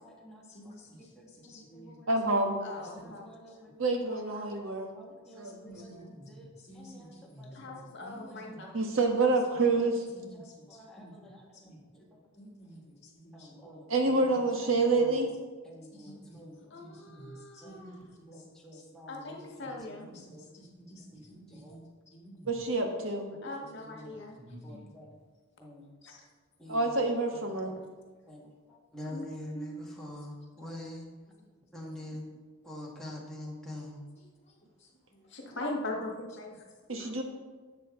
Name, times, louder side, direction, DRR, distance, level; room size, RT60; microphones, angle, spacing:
voice 1, 0.0-0.7 1.0-2.1 2.7-4.6 4.9-8.8 9.7-9.8 10.1-12.2 13.3-15.2 15.6-16.6 17.1-17.3 17.6-17.9 18.3-20.5 21.1-21.9 23.4-24.2 24.6-25.2 25.6-25.9 26.6-26.9 27.3-27.7 28.3-31.1 31.7-32.3 32.6-34.0, left 1 dB, 5° left, -4 dB, 1.8 m, -47 dB
voice 2, 0.5-1.0 1.4-2.0 2.9-3.1 5.6-6.3 6.7-8.6 11.0-11.1 11.6-11.8 12.4-12.8 13.2-13.6 16.0-16.4 16.8-17.3 17.6-18.3 20.1-21.9 22.1-22.4 24.4-24.9, equal, 35° left, -3 dB, 2.2 m, -50 dB
voice 3, 2.1-2.5 3.8-4.9 5.3-6.1 8.7-10.0 13.9-15.3 22.5-23.3 26.7-27.7 36.9-37.2, right 3 dB, 80° right, 3 dB, 1.4 m, -27 dB
voice 4, 2.6-3.3 7.5-8.7 16.7-18.0 19.1-20.1 23.4-24.4 26.0-26.2 29.1-29.3 29.5-29.7 35.3-36.6 37.0-37.1, left 2 dB, 60° left, 0 dB, 1.6 m, -40 dB
11.0 x 7.7 x 3.8 m, 1.3 s
head